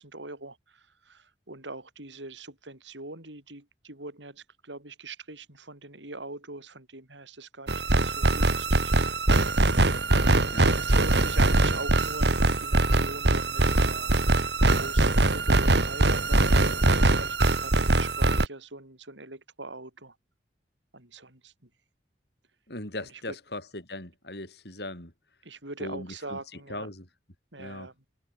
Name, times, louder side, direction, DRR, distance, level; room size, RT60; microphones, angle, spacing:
voice 1, 0.0-9.8 10.7-14.3 14.8-20.2 20.9-21.7 23.1-23.4 25.4-26.9 27.5-27.9, right 2 dB, 85° right, 7.7 m, -42 dB
sound 1, 7.7-18.4, right 2 dB, 65° right, 2.2 m, -22 dB
voice 2, 22.7-25.1 25.8-26.4 26.7-27.1 27.6-27.9, left 1 dB, 60° left, 6.3 m, -38 dB
head